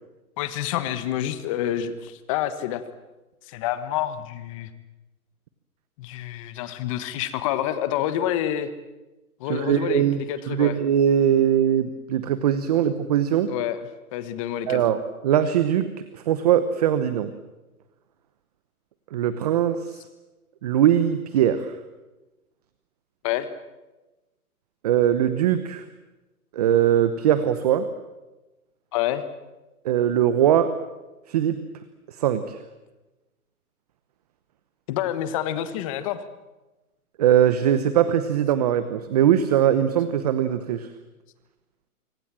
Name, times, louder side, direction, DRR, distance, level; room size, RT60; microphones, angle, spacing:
voice 1, 0.4-2.8 3.5-4.7 6.0-8.7 9.4-10.8 12.7-12.9 13.5-14.8 23.2-23.5 28.9-29.2 34.9-36.2, left 11 dB, 20° left, 12 dB, 1.4 m, -28 dB
voice 2, 9.5-13.5 14.7-15.0 15.2-15.9 16.1-17.3 19.1-20.0 20.6-21.6 24.8-25.8 26.5-27.9 29.8-30.7 31.3-31.6 32.2-32.6 37.2-40.9, right 10 dB, 25° right, 12 dB, 0.9 m, -21 dB
26.0 x 24.5 x 7.6 m, 1.1 s
hypercardioid pair, 160°, 45 cm